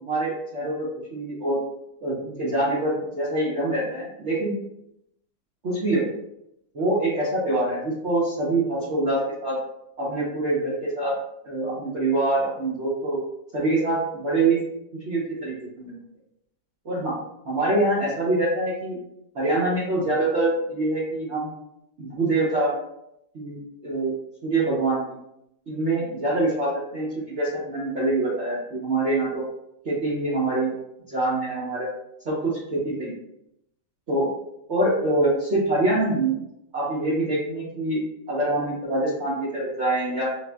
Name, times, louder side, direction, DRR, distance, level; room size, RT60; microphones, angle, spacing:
voice 1, 0.0-1.6 2.0-4.5 5.6-6.1 6.7-9.6 10.0-11.1 11.4-13.2 13.5-14.6 15.0-16.0 16.8-17.2 17.4-19.0 19.3-21.5 22.0-22.7 23.3-24.1 24.4-25.2 25.7-29.4 29.8-30.7 31.1-31.9 32.2-33.1 34.1-34.3 34.7-36.4 36.7-38.0 38.3-40.3, right 2 dB, 85° right, -8 dB, 0.6 m, -25 dB
5.2 x 2.1 x 2.2 m, 0.81 s
omnidirectional pair, 2.4 m